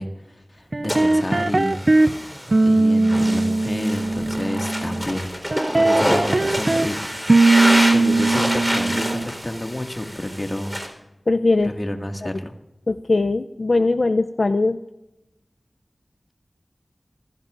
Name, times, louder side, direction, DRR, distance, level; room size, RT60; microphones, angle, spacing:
voice 1, 0.0-2.1 2.6-5.3 5.7-7.0 7.3-10.8 11.6-12.5, left 1 dB, 30° left, 4 dB, 2.0 m, -29 dB
sound 1, 0.7-2.1 2.5-5.0 5.5-6.9 7.3-9.3, right 2 dB, 50° right, 0.4 m, -19 dB
sound 2, 0.9-10.9, equal, 5° right, 4.1 m, -27 dB
voice 2, 11.3-11.7 12.9-14.8, left 3 dB, 65° left, 8 dB, 0.5 m, -20 dB
26.0 x 16.0 x 2.6 m, 0.95 s
wide cardioid pair, 65°, 0 cm